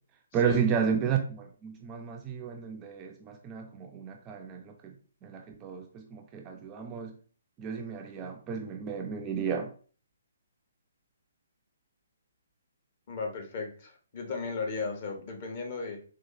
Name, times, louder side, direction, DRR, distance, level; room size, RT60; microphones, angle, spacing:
voice 1, 0.3-4.9 5.2-7.1 7.6-9.7, right 7 dB, 20° right, 0.3 m, -32 dB
voice 2, 13.1-16.0, left 4 dB, 40° left, 0.9 m, -36 dB
4.2 x 2.4 x 2.8 m
figure-of-eight pair, 130°, 0 cm